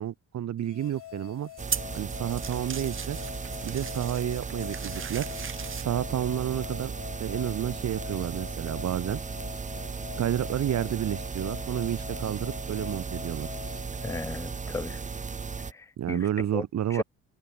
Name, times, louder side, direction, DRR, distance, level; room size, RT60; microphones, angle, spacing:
voice 1, 0.0-1.5 1.9-3.2 3.6-5.3 5.7-6.9 7.2-9.2 10.2-13.5 16.0-17.0, right 11 dB, 65° right, 2.0 m, -30 dB
sound 1, 0.6-15.0, left 14 dB, 80° left, 2.5 m, -45 dB
sound 2, 0.8-5.8, right 7 dB, 40° right, 1.9 m, -38 dB
sound 3, 1.6-15.7, right 5 dB, 25° right, 1.0 m, -36 dB
voice 2, 14.0-15.0 15.7-16.2 16.5-16.6 16.9-17.0, left 3 dB, 10° left, 0.6 m, -35 dB
cardioid pair, 90°, 30 cm